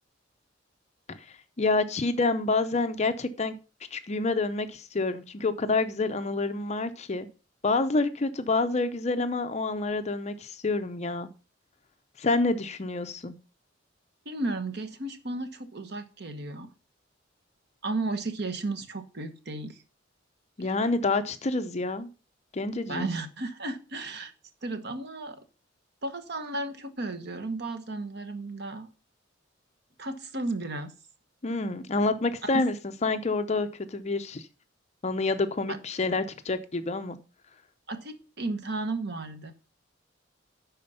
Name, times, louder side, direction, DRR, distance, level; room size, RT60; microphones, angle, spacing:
voice 1, 1.6-3.5 3.9-7.3 7.6-11.3 12.2-13.3 20.6-22.1 22.5-23.1 31.4-32.7 33.0-34.4 35.0-37.2, left 3 dB, 35° left, 0.6 m, -28 dB
voice 2, 14.2-16.7 17.8-19.8 22.9-24.3 24.6-25.4 26.0-28.9 30.0-30.9 32.4-32.6 35.7-35.8 37.9-39.5, right 2 dB, 60° right, 1.2 m, -34 dB
11.0 x 4.3 x 5.5 m
head